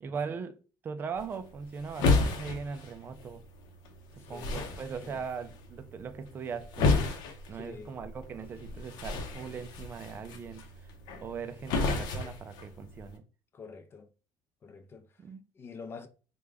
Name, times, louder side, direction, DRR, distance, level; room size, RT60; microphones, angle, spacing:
voice 1, 0.0-3.4 4.1-6.9 7.5-10.9 11.2-13.2 15.2-15.4, right 5 dB, 30° right, 0.4 m, -40 dB
sound 1, 1.1-13.2, left 3 dB, 65° left, 0.7 m, -33 dB
voice 2, 4.3-4.6 5.0-5.2 7.5-8.0 13.5-14.1 14.6-15.0 15.6-16.1, left 5 dB, 30° left, 0.5 m, -46 dB
3.5 x 2.2 x 3.3 m
cardioid pair, 135°, 8 cm